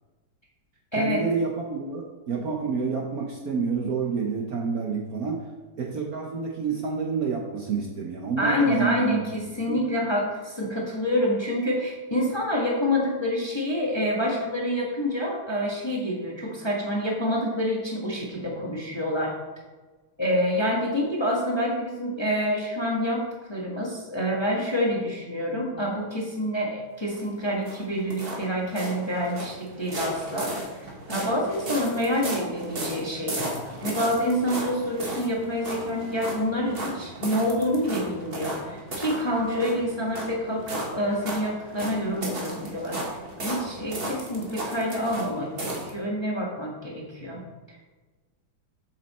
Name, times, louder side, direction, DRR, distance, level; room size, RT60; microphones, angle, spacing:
voice 1, 0.9-5.5 5.8-9.2 9.7-9.8, right 5 dB, 55° right, 0 dB, 1.2 m, -28 dB
voice 2, 8.4-19.4 20.2-23.2 23.5-30.5 31.1-33.5 33.8-47.4 47.7-47.8, equal, 15° left, -2 dB, 1.2 m, -27 dB
sound 1, 27.1-45.9, right 1 dB, 30° right, 1.5 m, -35 dB
7.4 x 7.4 x 4.2 m, 1.3 s
omnidirectional pair, 2.2 m